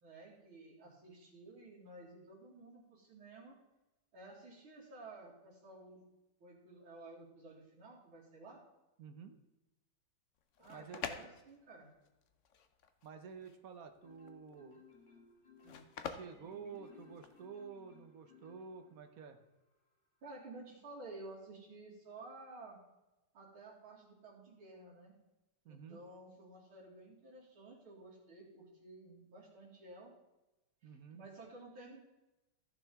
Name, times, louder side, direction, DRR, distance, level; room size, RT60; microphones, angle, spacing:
voice 1, 0.0-3.5 4.1-6.0 6.4-8.6 10.6-11.9 15.6-15.8 20.2-22.8 23.3-25.1 25.7-30.1 31.1-32.0, right 2 dB, 80° right, -8 dB, 3.0 m, -53 dB
voice 2, 9.0-9.4 10.7-11.1 13.0-14.8 16.0-19.4 25.6-26.0 30.8-31.2, right 6 dB, 55° right, 7 dB, 1.1 m, -50 dB
sound 1, 10.4-17.5, left 7 dB, 80° left, 0.6 m, -48 dB
Marimba xylophone, 14.0-19.2, left 5 dB, 20° left, 3.2 m, -61 dB
14.5 x 6.8 x 3.6 m, 0.99 s
omnidirectional pair, 2.3 m